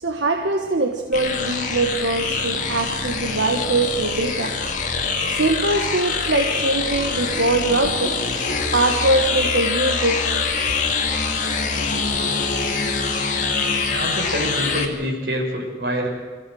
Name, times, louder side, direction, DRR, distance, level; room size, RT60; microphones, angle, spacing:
voice 1, 0.0-4.7 5.0-10.6, right 2 dB, 90° right, 1.4 m, -22 dB
sound 1, 1.1-14.9, left 4 dB, 45° left, 2.1 m, -24 dB
voice 2, 13.9-16.1, equal, 70° right, 5.4 m, -26 dB
25.0 x 15.5 x 7.7 m
head